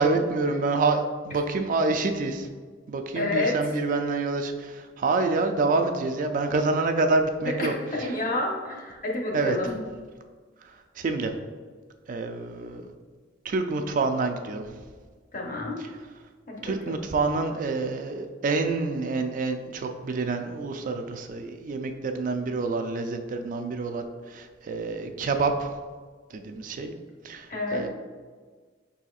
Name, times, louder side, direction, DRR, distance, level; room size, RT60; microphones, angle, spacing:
voice 1, 0.0-2.5 2.9-7.7 9.3-9.6 11.0-11.3 12.1-12.8 13.4-14.6 16.6-25.7 26.3-26.9 27.2-27.9, right 3 dB, 45° right, 6 dB, 0.3 m, -27 dB
voice 2, 3.1-3.9 7.4-9.8 15.3-15.8 16.5-17.0 27.5-27.9, left 2 dB, 45° left, 0 dB, 0.8 m, -29 dB
5.3 x 4.1 x 2.4 m, 1.5 s
head